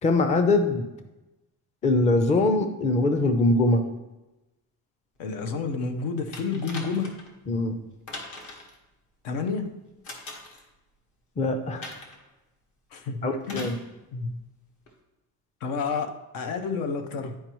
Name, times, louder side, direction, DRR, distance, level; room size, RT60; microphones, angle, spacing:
voice 1, 0.0-0.9 1.8-3.8 7.5-7.8 11.4-11.9 13.2-13.8, left 2 dB, 20° left, 7 dB, 0.5 m, -22 dB
voice 2, 5.2-7.2 9.2-9.8 12.9-13.7 14.1-14.4 15.6-17.4, left 4 dB, 80° left, 7 dB, 0.9 m, -30 dB
sound 1, 6.3-7.3 8.1-8.8 10.0-10.6 11.8-12.2 13.4-13.8 14.9-15.0, left 2 dB, 55° left, 1.5 m, -40 dB
10.5 x 4.5 x 3.0 m, 1.0 s
cardioid pair, 150°, 35 cm